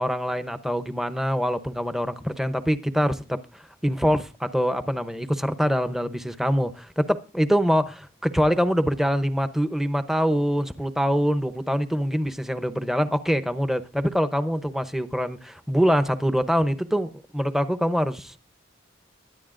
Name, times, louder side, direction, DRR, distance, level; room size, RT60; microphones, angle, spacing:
voice 1, 0.0-18.4, equal, ahead, 0.7 m, -24 dB
22.0 x 10.5 x 2.5 m
head